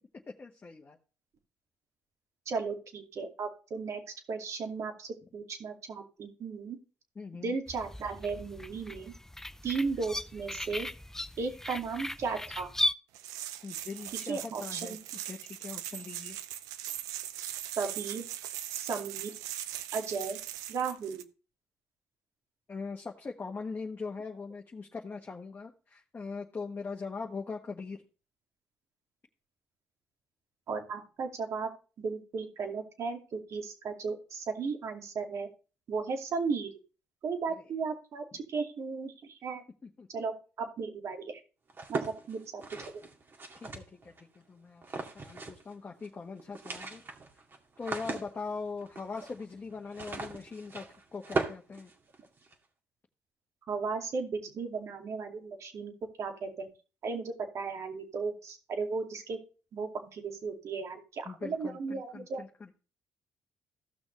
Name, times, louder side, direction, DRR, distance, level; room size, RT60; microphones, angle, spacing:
voice 1, 0.3-1.0 7.1-7.6 13.6-15.0 15.2-16.4 22.7-28.0 38.3-38.4 39.8-40.1 43.6-47.0 47.8-51.9 61.2-62.7, left 4 dB, 35° left, 1 dB, 1.3 m, -41 dB
voice 2, 2.5-4.0 4.3-6.8 7.3-9.1 9.6-10.9 11.4-12.7 14.3-15.0 17.7-18.2 18.7-19.3 19.9-20.4 20.7-21.2 30.7-31.7 32.0-35.5 35.9-36.7 37.2-39.6 40.1-41.4 41.9-42.6 53.7-55.9 56.2-56.7 57.0-59.4 59.7-62.4, right 4 dB, 60° right, 3 dB, 2.4 m, -35 dB
sound 1, 7.7-12.9, left 1 dB, 10° left, 0.5 m, -37 dB
sound 2, 13.1-21.2, right 12 dB, 85° right, 0.5 m, -40 dB
sound 3, 41.7-44.2 44.8-45.7 46.0-46.1 46.4-52.5, right 3 dB, 40° right, 2.2 m, -39 dB
15.5 x 6.1 x 3.2 m, 0.35 s
supercardioid pair, 55°, 6 cm